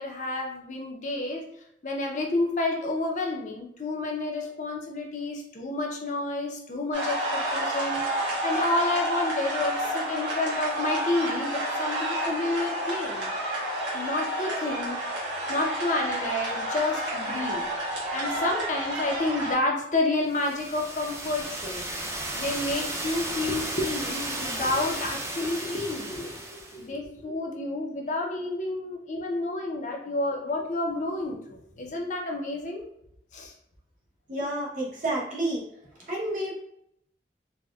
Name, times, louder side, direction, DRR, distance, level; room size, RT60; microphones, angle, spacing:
voice 1, 0.0-1.5 1.8-13.3 13.9-15.0 15.5-17.7 18.1-21.9 22.4-32.9 33.3-33.5, left 2 dB, 40° left, 1 dB, 0.5 m, -30 dB
sound 1, 6.9-19.5, right 1 dB, 80° right, 1.2 m, -30 dB
sound 2, 20.3-26.8, right 1 dB, 15° right, 0.4 m, -34 dB
voice 2, 34.3-35.7 36.0-36.5, right 1 dB, 45° right, -3 dB, 0.9 m, -30 dB
4.1 x 2.1 x 2.3 m, 0.73 s
head